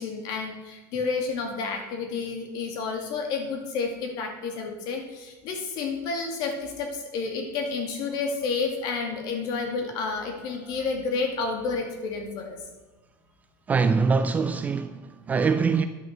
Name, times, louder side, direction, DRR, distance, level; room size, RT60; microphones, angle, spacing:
voice 1, 0.0-12.6, left 4 dB, 50° left, 2.4 m, -30 dB
voice 2, 13.7-15.8, right 5 dB, 15° right, 0.4 m, -23 dB
10.5 x 6.8 x 6.7 m
supercardioid pair, 160°, 9 cm